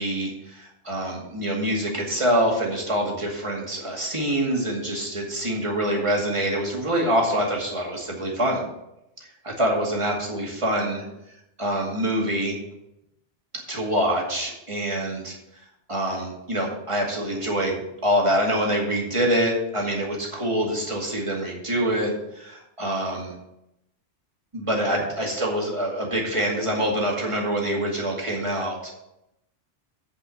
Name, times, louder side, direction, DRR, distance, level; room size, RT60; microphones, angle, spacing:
voice 1, 0.0-8.6 9.2-11.0 11.6-12.6 13.7-15.4 15.9-23.3 24.5-28.9, right 1 dB, 25° right, -1 dB, 2.3 m, -25 dB
8.8 x 5.4 x 7.7 m, 0.85 s
omnidirectional pair, 1.2 m